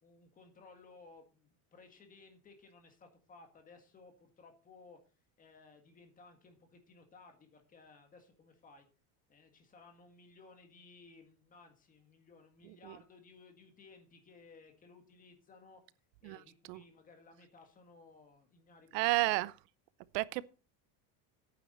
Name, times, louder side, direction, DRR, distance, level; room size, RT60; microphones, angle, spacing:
voice 1, 0.0-5.0 5.4-8.9 9.3-15.8 16.2-19.3, left 3 dB, 15° left, 1.7 m, -59 dB
voice 2, 18.9-19.5 20.1-20.5, right 21 dB, 85° right, 0.8 m, -31 dB
11.5 x 9.2 x 4.2 m
cardioid pair, 180°, 47 cm